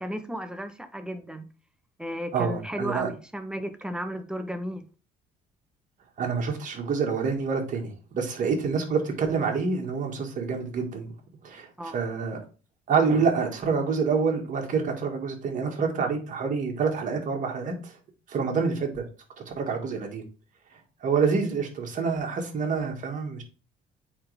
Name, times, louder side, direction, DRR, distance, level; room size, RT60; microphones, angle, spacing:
voice 1, 0.0-1.4 2.0-4.8 11.8-12.0, equal, 5° right, 0.9 m, -34 dB
voice 2, 2.3-3.1 6.2-11.1 11.4-12.4 12.9-17.9 18.3-19.0 19.5-20.2 21.0-23.4, right 5 dB, 50° right, 1.9 m, -27 dB
8.5 x 3.8 x 3.5 m
cardioid pair, 110°, 17 cm